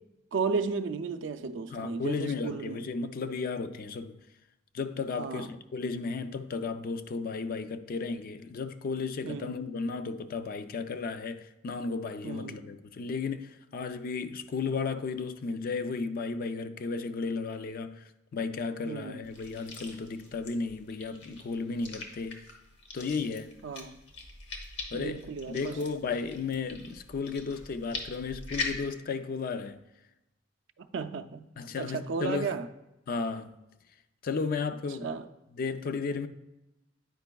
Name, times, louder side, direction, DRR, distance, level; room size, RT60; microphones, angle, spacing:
voice 1, 0.3-2.8 5.2-5.5 9.2-9.5 12.2-12.6 18.8-19.2 23.6-24.0 24.9-25.8 30.8-31.5 31.8-32.7 35.0-35.3, right 5 dB, 70° right, 0.4 m, -34 dB
voice 2, 1.7-4.2 4.7-22.5 22.9-23.5 24.9-25.2 25.5-29.8 31.6-32.6 33.1-33.6 34.2-35.2 35.5-36.3, left 4 dB, 50° left, 0.4 m, -34 dB
sound 1, 19.2-28.8, left 4 dB, 65° left, 1.0 m, -42 dB
9.0 x 5.1 x 2.2 m
head